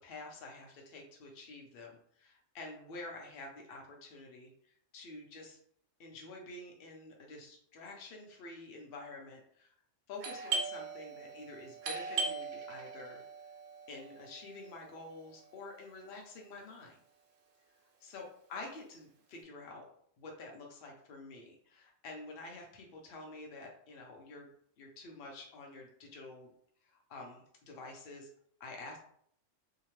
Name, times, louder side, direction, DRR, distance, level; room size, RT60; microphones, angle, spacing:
voice 1, 0.0-5.6 6.0-9.7 10.1-13.2 13.9-17.0 18.0-19.8 20.2-24.5 24.8-26.5 26.8-28.3 28.6-29.0, left 2 dB, 55° left, 0 dB, 0.8 m, -48 dB
Doorbell, 10.2-15.7, right 4 dB, 85° right, 1.0 m, -40 dB
2.7 x 2.1 x 3.0 m, 0.64 s
omnidirectional pair, 1.3 m